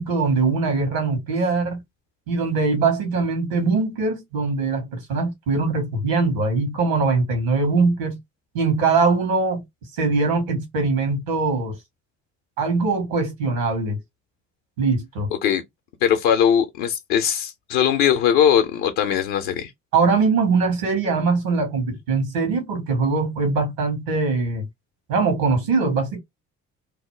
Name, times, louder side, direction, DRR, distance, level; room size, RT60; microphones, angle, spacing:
voice 1, 0.0-1.8 2.3-8.2 8.5-9.6 10.0-11.8 12.6-14.0 14.8-15.3 19.9-24.7 25.1-26.2, right 4 dB, 75° right, 1.2 m, -22 dB
voice 2, 16.0-19.7, left 9 dB, 65° left, 0.6 m, -20 dB
2.8 x 2.0 x 3.0 m
figure-of-eight pair, 45°, 43 cm